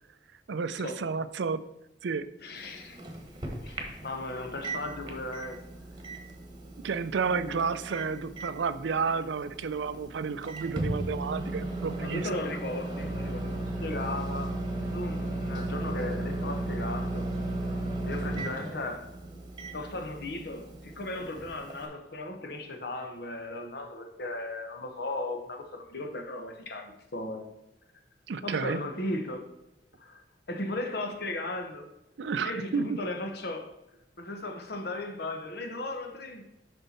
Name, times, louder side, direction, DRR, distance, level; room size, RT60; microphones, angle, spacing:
voice 1, 0.5-1.6 2.0-2.3 6.8-12.3 28.3-28.8 32.2-33.0, right 5 dB, 70° right, 14 dB, 0.4 m, -31 dB
voice 2, 2.4-3.0 3.6-5.6 7.3-7.6 12.0-14.5 14.8-17.3 18.0-19.1 19.7-27.5 28.4-29.5 30.0-30.2 30.5-31.9 32.4-33.7 34.2-36.4, left 2 dB, 60° left, 4 dB, 1.0 m, -36 dB
Microwave oven, 2.6-21.9, right 2 dB, 25° right, 1.2 m, -36 dB
6.7 x 5.6 x 4.3 m, 0.92 s
head